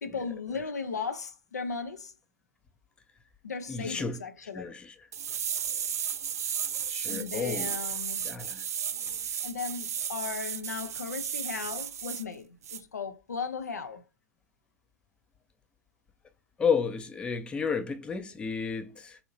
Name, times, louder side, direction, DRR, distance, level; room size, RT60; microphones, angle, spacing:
voice 1, 0.0-2.1 3.4-4.7 7.1-8.3 8.9-9.2 9.4-14.0, left 5 dB, 75° left, 0.6 m, -36 dB
voice 2, 3.7-4.2 4.5-4.9 6.9-7.8 8.2-8.6 16.6-19.2, left 6 dB, 10° left, 0.5 m, -31 dB
sound 1, 5.1-12.2 12.6-12.8, right 8 dB, 65° right, 0.4 m, -34 dB
4.2 x 2.7 x 2.5 m
figure-of-eight pair, 100°, 9 cm